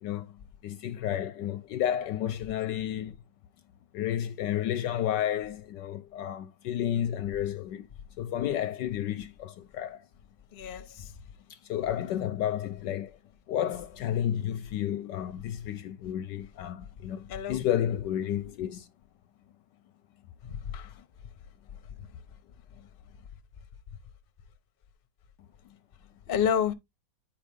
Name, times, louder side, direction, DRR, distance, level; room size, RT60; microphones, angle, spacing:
voice 1, 0.0-3.2 3.9-7.9 8.2-10.0 11.5-13.2 13.5-18.9, left 11 dB, 70° left, 1.1 m, -31 dB
voice 2, 10.5-11.1 17.3-17.7 20.4-21.0 26.3-26.7, left 8 dB, 45° left, 0.7 m, -30 dB
8.9 x 5.2 x 3.4 m
omnidirectional pair, 2.2 m